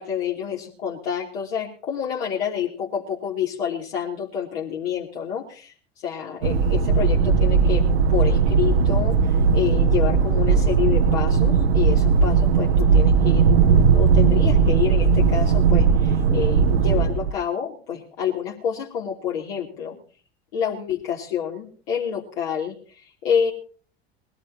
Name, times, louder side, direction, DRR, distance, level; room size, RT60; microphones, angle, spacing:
voice 1, 0.0-5.7 6.0-7.8 8.1-20.0 20.5-23.5, left 8 dB, 65° left, -3 dB, 3.1 m, -28 dB
sound 1, 6.4-17.3, right 5 dB, 70° right, 1.1 m, -18 dB
22.0 x 16.5 x 2.9 m, 0.40 s
figure-of-eight pair, 75°, 32 cm